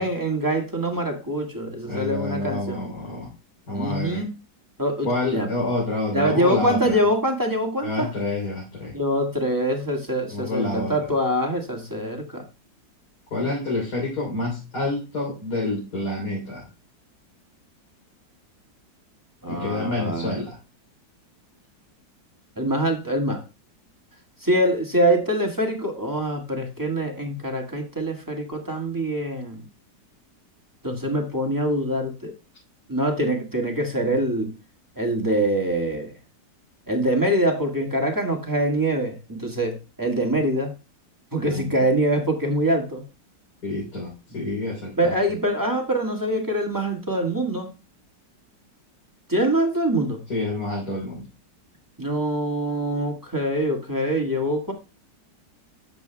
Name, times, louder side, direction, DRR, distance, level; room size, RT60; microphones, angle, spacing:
voice 1, 0.0-2.8 3.7-4.3 4.8-5.5 6.1-8.1 8.9-12.4 19.4-20.4 22.6-23.4 24.4-29.6 30.8-32.3 32.9-34.5 34.9-36.1 36.9-40.7 41.3-43.0 44.3-44.4 45.0-47.7 49.3-50.2 52.0-54.7, right 1 dB, 10° right, 2 dB, 1.7 m, -24 dB
voice 2, 1.9-3.3 3.7-4.2 5.0-7.0 7.8-9.0 10.3-11.0 13.3-16.7 19.5-20.6 41.4-41.7 43.6-45.2 50.3-51.3, left 2 dB, 60° left, -3 dB, 4.1 m, -28 dB
13.0 x 8.1 x 2.3 m, 0.29 s
omnidirectional pair, 1.9 m